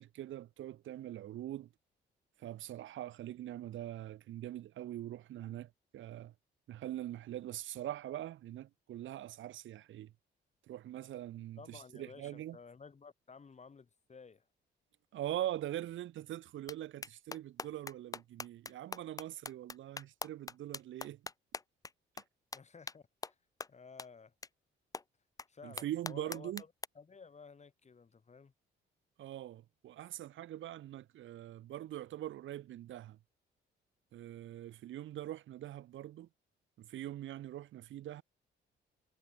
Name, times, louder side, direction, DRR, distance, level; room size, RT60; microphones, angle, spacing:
voice 1, 0.0-1.7 2.4-6.3 6.7-10.1 10.7-12.6 15.1-21.2 25.6-26.6 29.2-33.2 34.1-36.3 36.8-38.2, right 13 dB, 75° right, 1.6 m, -43 dB
voice 2, 11.6-14.4 22.5-23.3 23.7-24.3 25.5-26.7 26.9-28.5, left 5 dB, 35° left, 4.7 m, -54 dB
sound 1, 16.7-16.8 17.0-21.9 22.2-22.3 22.5-22.6 22.9-23.0 23.2-23.3 23.6-23.7 24.0-24.1 24.4-24.5 24.9-25.0 25.4-25.5 25.8-26.9, left 4 dB, 20° left, 0.6 m, -42 dB
cardioid pair, 90°, 20 cm